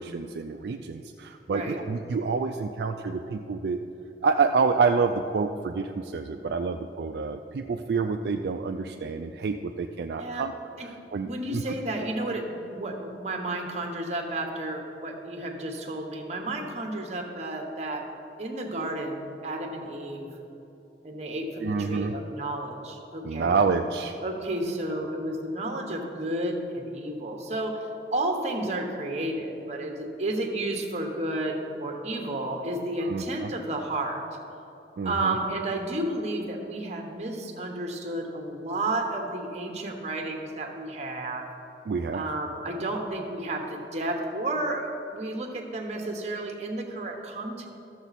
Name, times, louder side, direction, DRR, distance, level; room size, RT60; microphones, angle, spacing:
voice 1, 0.0-3.8 4.2-10.5 10.8-11.8 21.6-22.2 23.2-24.2 33.0-33.5 35.0-35.3 41.9-42.2, right 4 dB, 65° right, 4 dB, 0.3 m, -28 dB
voice 2, 11.3-18.0 18.4-20.3 21.0-23.6 24.2-34.2 35.0-41.5 42.1-47.7, right 1 dB, 40° right, 3 dB, 1.1 m, -32 dB
13.5 x 7.0 x 4.1 m, 2.9 s
head